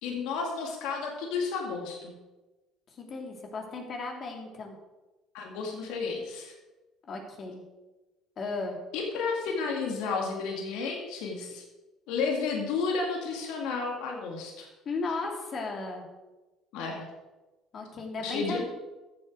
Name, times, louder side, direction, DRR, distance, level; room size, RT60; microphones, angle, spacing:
voice 1, 0.0-2.1 5.3-6.5 8.9-11.6 12.1-14.7 16.7-17.1 18.2-18.6, left 4 dB, 75° left, 1 dB, 2.2 m, -32 dB
voice 2, 2.9-4.8 7.1-7.6 8.4-8.8 14.8-16.1 17.7-18.6, left 3 dB, 50° left, 2 dB, 2.9 m, -35 dB
14.0 x 7.6 x 4.7 m, 1.1 s
supercardioid pair, 75°, 0 cm